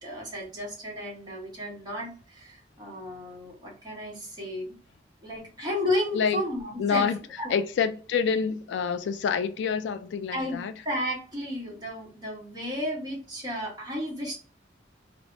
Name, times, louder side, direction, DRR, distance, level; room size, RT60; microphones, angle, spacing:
voice 1, 0.0-4.8 5.2-7.1 7.4-7.5 10.3-14.3, left 1 dB, 25° right, 1.2 m, -33 dB
voice 2, 6.8-7.2 7.5-10.7, left 6 dB, 80° left, 0.3 m, -27 dB
3.2 x 2.0 x 2.6 m
head